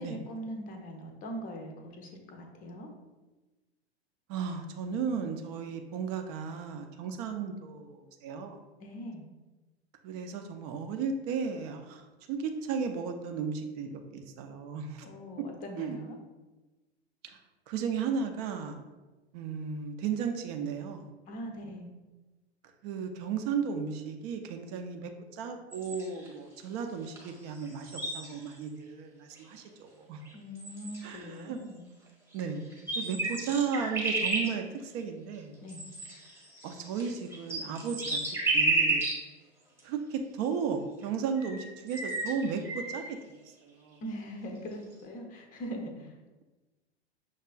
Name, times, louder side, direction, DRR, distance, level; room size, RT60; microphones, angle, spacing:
voice 1, 0.0-2.9 8.8-9.2 15.0-16.2 21.3-21.9 30.3-31.8 35.6-35.8 44.0-46.1, equal, 25° left, 2 dB, 0.6 m, -41 dB
voice 2, 4.3-8.6 10.0-15.1 15.4-15.5 15.8-16.0 17.2-17.4 17.7-18.8 19.3-21.1 22.8-30.2 31.0-31.6 32.3-32.6 33.0-35.6 36.6-38.2 38.5-39.0 39.8-43.2 43.6-44.0, right 6 dB, 35° right, 5 dB, 0.4 m, -35 dB
sound 1, 25.7-26.3 27.2-27.3 27.5-28.6 29.4-29.5 30.2-30.3 30.6-31.2 32.3-32.4 32.7-34.5 35.7-39.2 39.8-39.9 41.0-41.1 41.4-43.1, right 2 dB, 5° right, 0.9 m, -32 dB
5.7 x 2.3 x 2.3 m, 1.2 s
figure-of-eight pair, 90°, 33 cm